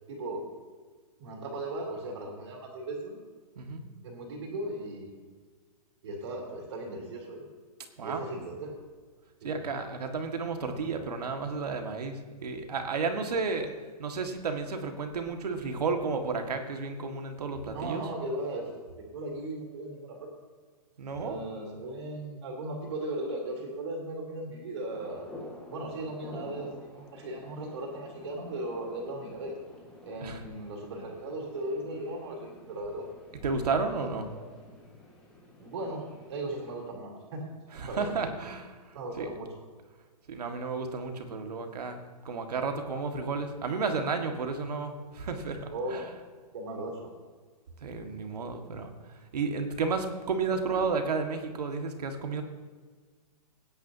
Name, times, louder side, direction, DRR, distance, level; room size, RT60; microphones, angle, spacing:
voice 1, 0.1-0.4 1.2-3.2 4.0-5.1 6.0-7.5 8.0-8.7 9.4-9.6 17.7-18.8 19.1-20.3 21.2-25.3 25.7-29.5 30.0-33.1 34.0-34.1 34.4-34.5 35.6-37.4 37.9-38.2 38.9-39.6 45.7-46.0 46.5-47.1, right 1 dB, 45° right, -1 dB, 3.6 m, -37 dB
voice 2, 9.4-13.7 14.0-18.0 21.0-21.4 30.2-30.4 33.4-34.3 37.7-39.3 40.3-46.0 47.8-48.9 49.3-52.4, right 4 dB, 70° right, 5 dB, 1.9 m, -32 dB
sound 1, 24.9-36.8, left 2 dB, 5° left, 1.5 m, -50 dB
19.5 x 10.0 x 2.8 m, 1.5 s
hypercardioid pair, 175°, 21 cm